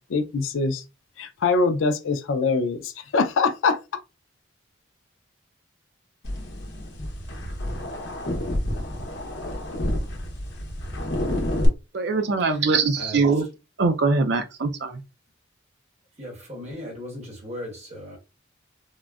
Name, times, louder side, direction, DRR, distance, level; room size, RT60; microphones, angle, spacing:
voice 1, 0.1-0.8 1.2-3.8, left 4 dB, 75° left, 0.4 m, -23 dB
sound 1, 6.2-11.7, left 1 dB, 60° left, 0.8 m, -29 dB
voice 2, 11.9-13.4 13.8-15.0, right 4 dB, 55° right, 0.4 m, -22 dB
voice 3, 12.5-13.4 16.2-18.2, equal, 35° right, 1.1 m, -38 dB
3.7 x 2.0 x 2.3 m
head